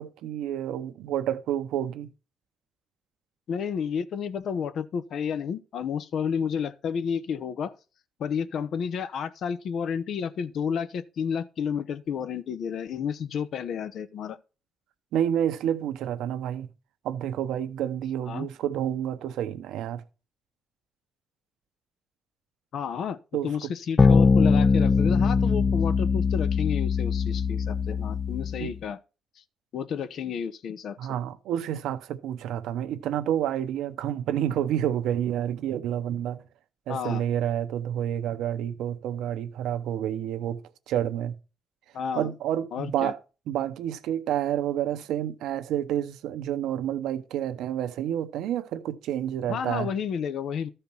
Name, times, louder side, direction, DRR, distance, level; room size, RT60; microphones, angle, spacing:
voice 1, 0.0-2.1 15.1-16.7 17.0-20.0 23.3-23.7 28.6-28.7 31.0-36.4 36.9-40.6 40.9-41.4 42.1-43.2 43.5-49.9, right 10 dB, 85° right, 0.8 m, -29 dB
voice 2, 3.5-7.7 8.2-14.4 18.3-18.5 22.7-29.0 29.7-31.0 36.9-37.2 41.9-42.3 42.7-43.1 49.5-50.7, left 7 dB, 65° left, 0.8 m, -31 dB
sound 1, 24.0-28.8, left 5 dB, 35° left, 0.5 m, -22 dB
13.0 x 4.4 x 5.5 m
cardioid pair, 90°, 0 cm